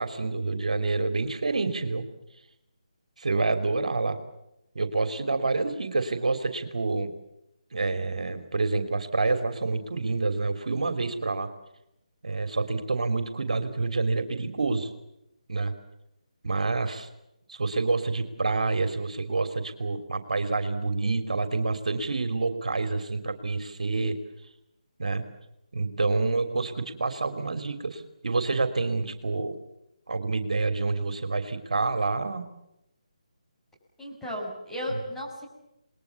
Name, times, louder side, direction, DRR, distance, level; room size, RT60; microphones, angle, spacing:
voice 1, 0.0-2.0 3.2-4.2 4.7-7.1 7.7-11.5 12.2-14.9 15.5-15.7 16.4-17.1 17.5-24.2 25.0-25.3 25.7-29.6 30.1-32.5 34.9-35.0, right 3 dB, 70° right, 9 dB, 3.2 m, -28 dB
voice 2, 34.0-35.5, equal, 5° left, -4 dB, 6.5 m, -34 dB
29.5 x 21.0 x 7.2 m, 0.85 s
figure-of-eight pair, 160°, 4 cm